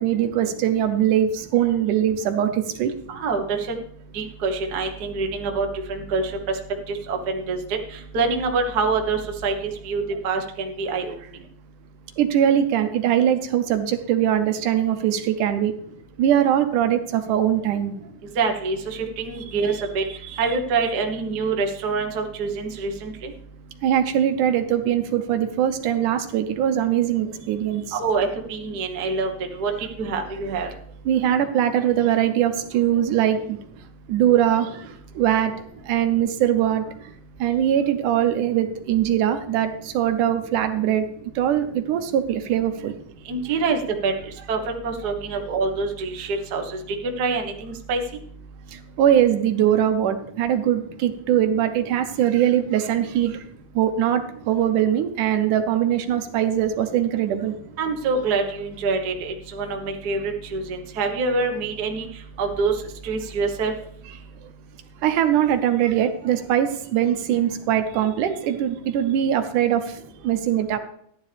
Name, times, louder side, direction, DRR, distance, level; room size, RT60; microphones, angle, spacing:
voice 1, 0.0-2.9 12.2-15.7 16.2-17.9 20.2-20.4 23.8-28.0 31.1-33.4 34.1-34.8 35.2-35.5 35.9-36.8 37.4-41.0 41.4-42.9 49.0-53.4 53.8-57.5 65.0-69.8 70.2-70.8, right 10 dB, 70° right, 8 dB, 2.2 m, -21 dB
voice 2, 3.1-3.6 4.1-6.2 6.9-7.6 8.1-11.1 18.4-20.0 20.4-23.3 28.0-29.7 30.0-30.7 43.3-44.1 44.5-44.6 44.8-46.6 47.2-48.0 57.8-62.1 62.4-62.7 63.0-63.7, right 4 dB, 85° right, 3 dB, 0.8 m, -25 dB
14.0 x 10.5 x 3.4 m, 0.66 s
omnidirectional pair, 4.1 m